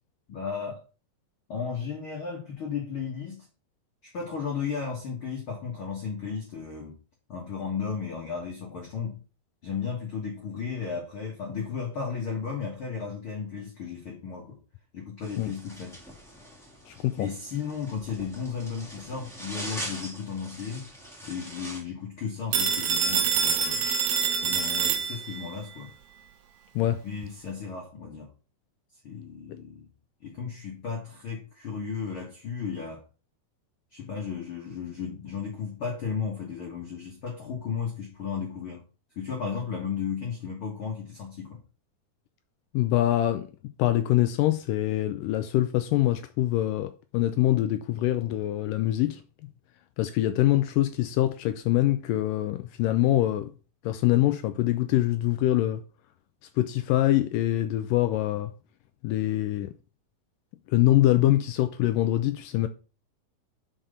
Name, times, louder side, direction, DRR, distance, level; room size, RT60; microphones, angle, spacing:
voice 1, 0.3-0.8 1.5-3.5 4.0-6.9 7.3-9.2 9.6-14.6 14.9-16.0 17.2-20.9 21.2-23.9 24.4-25.9 27.0-28.3 29.0-29.9 30.2-33.0 33.9-38.8 39.1-41.6, left 6 dB, 50° left, 1.7 m, -34 dB
sound 1, 15.2-21.8, right 1 dB, ahead, 1.7 m, -42 dB
voice 2, 16.9-17.3 26.8-27.0 42.7-49.2 50.0-53.5 53.8-55.8 56.6-58.5 59.0-59.7 60.7-62.7, left 14 dB, 85° left, 2.0 m, -24 dB
Telephone, 22.5-25.5, right 7 dB, 85° right, 1.5 m, -26 dB
5.9 x 5.6 x 5.0 m
omnidirectional pair, 4.3 m